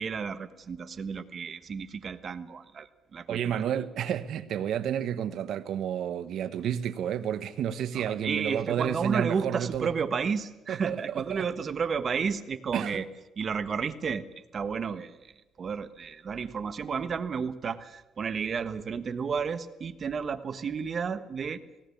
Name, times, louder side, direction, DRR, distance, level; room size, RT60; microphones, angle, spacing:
voice 1, 0.0-3.6 7.9-13.1 13.4-21.6, right 6 dB, 40° right, 1.3 m, -32 dB
voice 2, 3.3-9.9 10.7-10.9 11.3-11.4 12.7-13.0, right 9 dB, 70° right, 1.2 m, -30 dB
18.5 x 18.0 x 8.6 m
cardioid pair, 115°, 0 cm